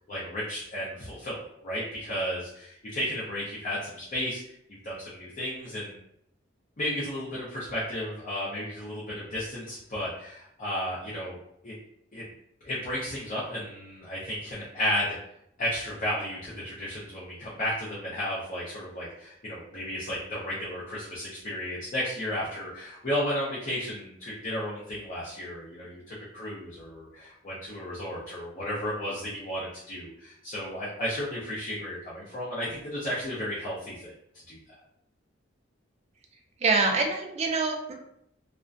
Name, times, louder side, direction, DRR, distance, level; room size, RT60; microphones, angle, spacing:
voice 1, 0.1-4.5 4.8-5.9 6.8-11.4 11.6-11.7 12.1-12.3 12.6-15.2 15.6-34.1 34.5-34.6, left 1 dB, 40° left, -8 dB, 0.6 m, -33 dB
voice 2, 36.6-37.9, right 3 dB, 35° right, 2 dB, 0.4 m, -25 dB
2.4 x 2.1 x 2.4 m, 0.74 s
head